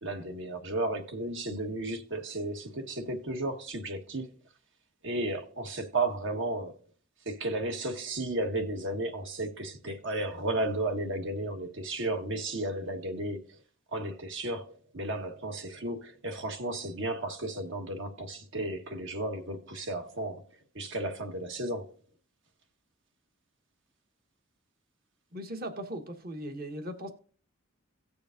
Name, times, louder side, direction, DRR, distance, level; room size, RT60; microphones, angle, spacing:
voice 1, 0.0-4.3 5.0-6.8 7.2-13.4 13.9-20.4 20.7-21.8, right 2 dB, 65° right, 1.4 m, -33 dB
voice 2, 25.3-27.1, right 1 dB, 50° right, 1.2 m, -38 dB
18.0 x 6.9 x 2.6 m
head